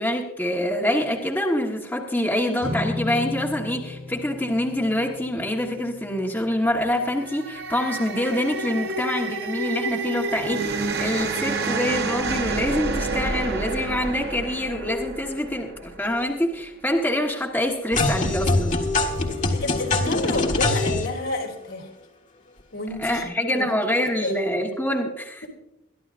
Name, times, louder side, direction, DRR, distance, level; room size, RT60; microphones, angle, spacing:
voice 1, 0.0-18.8 23.0-25.5, left 1 dB, 10° left, -1 dB, 1.3 m, -25 dB
sound 1, 2.6-9.0, left 2 dB, 20° right, 3.8 m, -37 dB
sound 2, 7.0-16.3, right 3 dB, 50° right, 1.0 m, -29 dB
sound 3, 17.9-21.1, left 2 dB, 35° left, 1.6 m, -23 dB
voice 2, 19.3-21.9 22.7-23.7 24.2-24.4, left 2 dB, 65° left, 1 dB, 3.2 m, -30 dB
22.5 x 13.0 x 2.6 m, 0.87 s
head